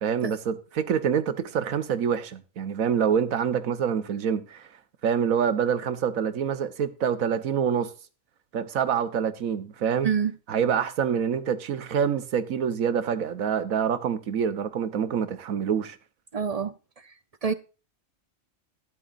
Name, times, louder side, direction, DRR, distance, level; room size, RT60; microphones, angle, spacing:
voice 1, 0.0-4.7 5.0-7.9 8.5-10.1 10.5-16.0, right 7 dB, 90° right, 1.4 m, -26 dB
voice 2, 16.3-16.7 17.4-17.5, right 6 dB, 45° right, 0.5 m, -25 dB
12.5 x 11.5 x 2.5 m
omnidirectional pair, 1.4 m